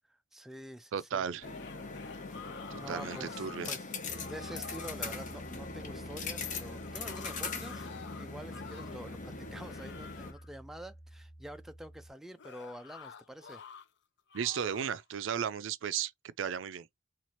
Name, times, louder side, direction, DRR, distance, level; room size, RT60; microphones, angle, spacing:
voice 1, 0.1-1.2 2.8-3.8 4.2-13.6, right 1 dB, ahead, 0.3 m, -47 dB
voice 2, 0.9-1.5 2.7-3.7 14.3-16.1 16.4-16.9, right 8 dB, 80° right, 0.4 m, -35 dB
sound 1, 1.3-3.8 4.1-5.0 6.4-9.1 9.5-10.5 12.4-13.9 14.3-15.0, left 7 dB, 65° left, 0.5 m, -50 dB
sound 2, 1.4-10.3, left 4 dB, 40° left, 0.8 m, -41 dB
Piano, 4.0-12.1, right 1 dB, 15° left, 1.5 m, -50 dB
4.3 x 2.4 x 2.9 m
head